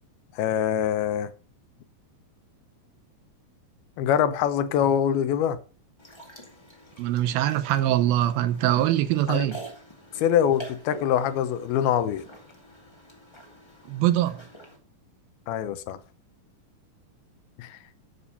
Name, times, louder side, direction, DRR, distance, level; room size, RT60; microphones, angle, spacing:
voice 1, 0.3-1.3 4.0-5.6 9.3-9.5 10.2-12.2 15.5-16.0 17.6-17.8, left 9 dB, 85° left, 2.8 m, -24 dB
sound 1, 6.0-14.8, right 1 dB, 15° left, 1.1 m, -46 dB
voice 2, 7.0-9.6 13.9-14.4, right 13 dB, 80° right, 2.6 m, -23 dB
9.8 x 6.9 x 5.6 m
omnidirectional pair, 4.4 m